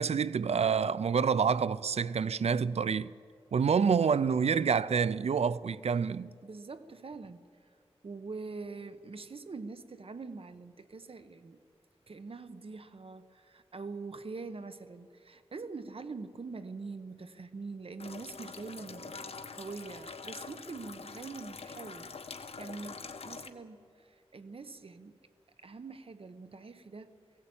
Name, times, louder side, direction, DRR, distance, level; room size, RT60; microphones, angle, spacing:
voice 1, 0.0-3.1 3.5-6.3, right 6 dB, 75° right, 0.5 m, -27 dB
voice 2, 6.4-7.4 8.0-11.6 12.1-25.2 25.6-27.2, right 4 dB, 60° right, 1.0 m, -44 dB
sound 1, 18.0-23.5, left 4 dB, 70° left, 1.1 m, -45 dB
19.0 x 17.0 x 8.7 m
wide cardioid pair, 75°, 11 cm